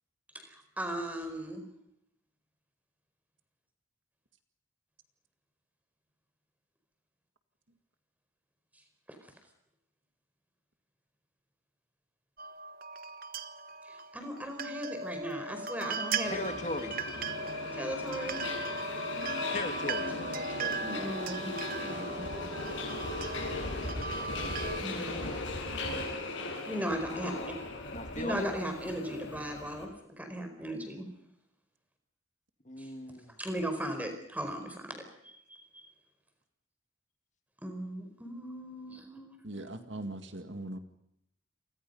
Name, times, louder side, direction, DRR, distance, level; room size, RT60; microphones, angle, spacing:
voice 1, 0.3-1.6 9.1-9.2 13.8-16.4 17.7-18.4 20.2-21.5 21.8-22.4 24.8-25.3 26.6-27.3 28.2-29.9 30.2-31.1 32.8-32.9 33.4-35.9 37.6-39.7, right 1 dB, 10° right, 6 dB, 4.6 m, -38 dB
sound 1, 12.4-24.8, right 3 dB, 45° right, 1.2 m, -38 dB
Subway metro underground, 16.2-29.9, left 2 dB, 65° left, 7.9 m, -38 dB
voice 2, 16.2-17.0 19.5-20.1 27.9-28.5 32.7-33.3, left 2 dB, 35° left, 6 dB, 2.1 m, -37 dB
voice 3, 39.4-40.8, right 1 dB, 65° right, 7 dB, 2.0 m, -40 dB
29.5 x 24.0 x 5.5 m, 0.76 s
head